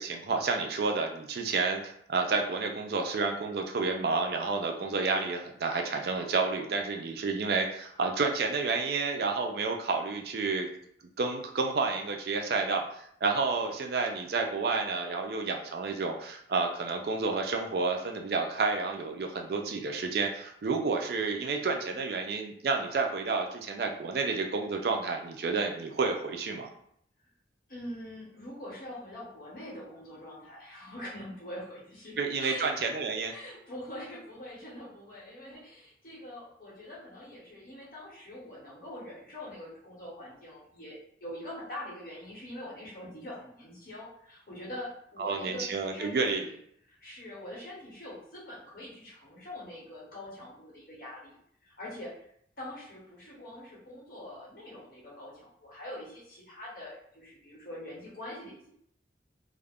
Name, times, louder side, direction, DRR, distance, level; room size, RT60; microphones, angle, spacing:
voice 1, 0.0-10.7 11.2-26.7 32.2-33.3 45.2-46.4, right 4 dB, 55° right, 3 dB, 0.4 m, -30 dB
voice 2, 27.7-32.7 33.3-46.6 46.9-51.4 51.6-52.2 52.6-58.7, left 1 dB, 50° left, -7 dB, 0.9 m, -44 dB
2.4 x 2.0 x 3.4 m, 0.69 s
head